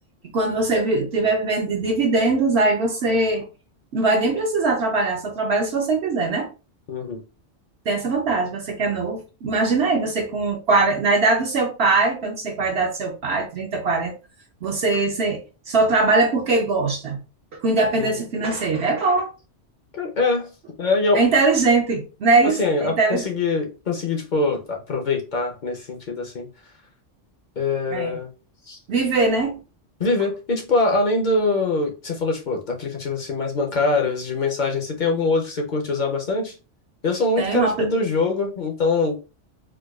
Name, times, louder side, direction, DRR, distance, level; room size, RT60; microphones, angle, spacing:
voice 1, 0.3-3.5 3.9-6.5 7.9-14.1 14.6-17.2 17.6-19.3 21.1-23.2 27.9-28.2 28.9-29.6 37.4-37.9, right 3 dB, 65° right, 1 dB, 0.8 m, -21 dB
voice 2, 6.9-7.2 18.0-18.2 19.9-20.5 20.8-21.2 22.4-26.5 27.6-28.3 28.7-28.8 30.0-36.5 37.0-39.2, left 3 dB, 50° left, 2 dB, 0.6 m, -23 dB
4.6 x 2.2 x 2.2 m, 0.32 s
omnidirectional pair, 1.2 m